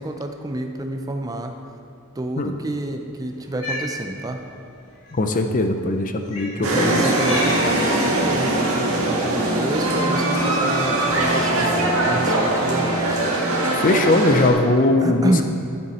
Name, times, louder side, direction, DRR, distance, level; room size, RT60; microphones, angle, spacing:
voice 1, 0.0-1.6 2.2-4.4 6.6-13.2 15.0-15.4, right 1 dB, 15° right, 5 dB, 0.5 m, -28 dB
Cat, 3.4-3.9 5.0-5.1 6.3-6.6 7.1-7.7 8.6-9.0, left 1 dB, 80° left, 2.1 m, -31 dB
voice 2, 5.1-7.0 13.7-15.4, left 2 dB, 40° left, 6 dB, 0.6 m, -20 dB
sound 1, 6.6-14.5, right 1 dB, 80° right, 1.7 m, -21 dB
12.0 x 7.1 x 4.2 m, 2.6 s
head